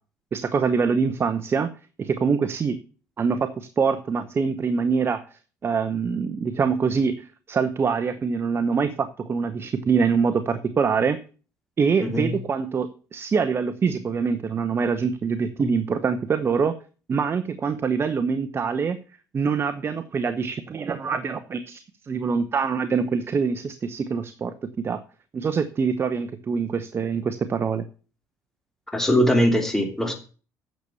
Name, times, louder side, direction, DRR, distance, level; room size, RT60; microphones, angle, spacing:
voice 1, 0.3-1.7 2.0-2.8 3.2-11.2 11.8-16.7 17.1-19.0 19.3-25.0 25.3-27.8, right 5 dB, 35° right, 11 dB, 0.9 m, -24 dB
voice 2, 12.0-12.3 28.9-30.1, equal, 5° left, 3 dB, 2.8 m, -21 dB
9.3 x 6.8 x 6.9 m, 0.37 s
cardioid pair, 105°, 7 cm